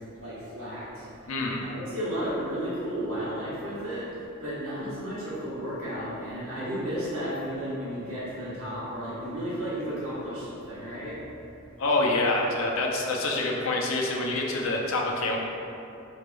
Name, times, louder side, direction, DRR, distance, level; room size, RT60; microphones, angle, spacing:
voice 1, 0.2-1.1 1.6-4.1 4.4-11.2, equal, 80° right, -9 dB, 1.1 m, -33 dB
voice 2, 1.3-1.6 11.8-15.4, left 2 dB, 70° left, -1 dB, 0.5 m, -26 dB
4.9 x 3.1 x 2.2 m, 2.8 s
head